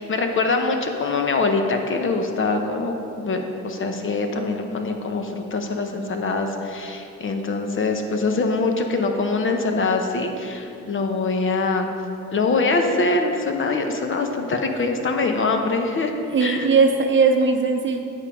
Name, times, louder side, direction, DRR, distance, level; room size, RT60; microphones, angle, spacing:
voice 1, 0.0-11.9 12.3-16.1 16.4-16.7, left 3 dB, 40° left, 4 dB, 0.9 m, -23 dB
voice 2, 16.3-18.0, right 4 dB, 40° right, 5 dB, 0.8 m, -18 dB
9.0 x 5.4 x 4.8 m, 2.7 s
cardioid pair, 90°, 30 cm